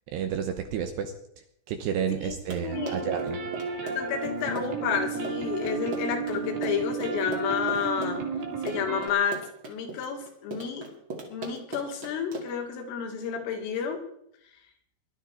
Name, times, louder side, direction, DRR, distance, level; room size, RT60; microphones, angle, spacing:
voice 1, 0.1-1.1 1.7-3.4, right 8 dB, 75° right, 6 dB, 2.7 m, -30 dB
voice 2, 2.1-3.1 3.8-8.2 8.6-10.9 11.3-14.0, left 7 dB, 80° left, 3 dB, 4.7 m, -31 dB
Run, 2.3-12.7, right 3 dB, 40° right, 2.0 m, -40 dB
sound 1, 2.7-9.1, right 5 dB, 55° right, 3.9 m, -33 dB
19.5 x 12.0 x 4.6 m, 0.73 s
omnidirectional pair, 5.8 m